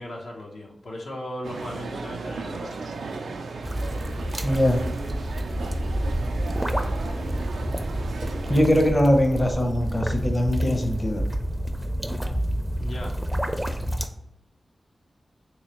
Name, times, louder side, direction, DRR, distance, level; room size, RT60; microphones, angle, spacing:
voice 1, 0.0-2.9 12.8-13.1, left 1 dB, 80° left, -2 dB, 0.7 m, -37 dB
sound 1, 1.4-8.6, right 4 dB, 90° right, 0.3 m, -35 dB
sound 2, 3.6-14.1, equal, 10° right, 0.4 m, -29 dB
voice 2, 4.4-4.8 8.5-11.2, equal, 35° left, 3 dB, 0.7 m, -21 dB
3.3 x 3.1 x 2.9 m, 0.81 s
cardioid pair, 45°, 0 cm